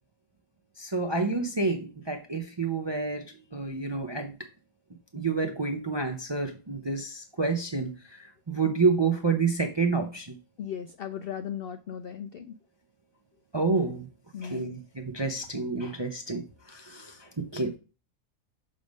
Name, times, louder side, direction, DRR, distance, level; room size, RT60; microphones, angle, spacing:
voice 1, 0.8-3.2 3.5-4.4 5.1-10.4 13.5-14.1 14.4-16.4 16.7-17.8, right 4 dB, 35° right, 4 dB, 0.4 m, -29 dB
voice 2, 10.6-12.6 14.3-14.7, left 8 dB, 75° left, 9 dB, 0.5 m, -37 dB
6.6 x 3.5 x 5.2 m, 0.32 s
omnidirectional pair, 1.5 m